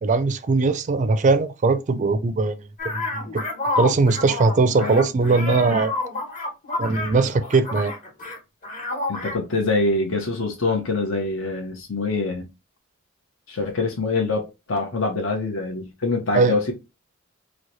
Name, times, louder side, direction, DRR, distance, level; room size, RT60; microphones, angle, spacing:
voice 1, 0.0-3.5 3.8-5.9 6.8-7.9 16.3-16.5, right 3 dB, 35° right, 0.4 m, -20 dB
sound 1, 2.8-8.4 8.6-9.4, left 2 dB, 40° left, 1.3 m, -29 dB
voice 2, 5.4-5.8 9.1-12.4 13.5-16.7, left 3 dB, 70° left, 0.8 m, -25 dB
3.1 x 2.0 x 3.9 m
head